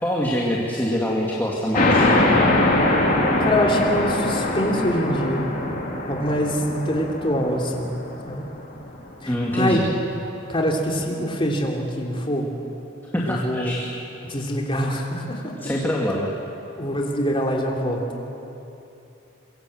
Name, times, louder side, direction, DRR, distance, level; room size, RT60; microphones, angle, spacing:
voice 1, 0.0-2.0 9.3-9.8 13.1-14.0 15.6-16.3, equal, 10° left, -3 dB, 2.3 m, -24 dB
sound 1, 1.7-8.9, left 1 dB, 45° left, 3.3 m, -22 dB
voice 2, 3.4-5.5 6.1-7.9 8.3-8.4 9.2-9.8 10.5-12.5 13.2-13.7 14.3-15.4 16.8-18.0, equal, 25° left, 0 dB, 3.0 m, -24 dB
25.0 x 23.0 x 7.9 m, 2.9 s
head